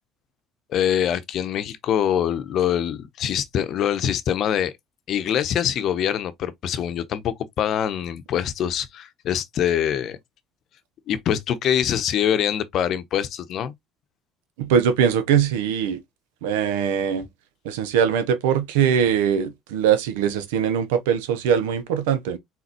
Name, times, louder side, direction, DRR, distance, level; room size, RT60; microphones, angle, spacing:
voice 1, 0.7-4.7 5.1-10.2 11.1-13.7, left 9 dB, 60° left, 0.7 m, -24 dB
voice 2, 14.6-16.0 16.4-17.3 17.6-22.4, right 8 dB, 85° right, 0.8 m, -21 dB
4.0 x 4.0 x 2.9 m
hypercardioid pair, 75°, 0 cm